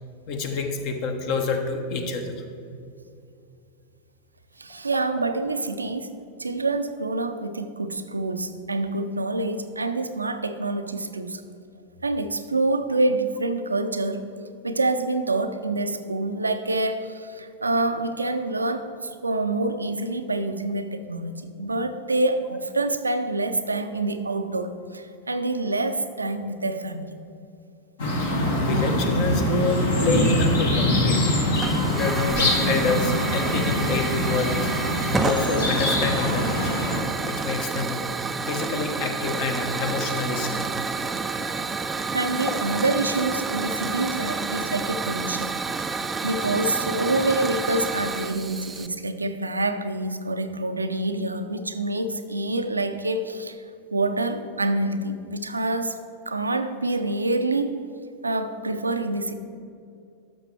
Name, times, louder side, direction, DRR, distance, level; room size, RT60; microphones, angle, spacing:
voice 1, 0.3-2.4 28.6-31.3 31.9-34.7 35.2-36.8 37.2-38.0 38.5-40.8, left 4 dB, 45° left, 5 dB, 1.0 m, -27 dB
voice 2, 4.6-6.1 6.4-11.4 12.0-14.3 14.6-27.2 42.1-45.9 46.2-53.6 53.9-56.0 56.3-57.7 58.2-59.4, right 2 dB, 80° right, 9 dB, 0.5 m, -26 dB
sound 1, 28.0-37.0, left 1 dB, 60° left, 1.7 m, -23 dB
Hiss / Fire, 31.5-48.9, right 4 dB, 15° right, 0.4 m, -29 dB
12.0 x 6.5 x 3.3 m, 2.5 s
figure-of-eight pair, 90°, 0 cm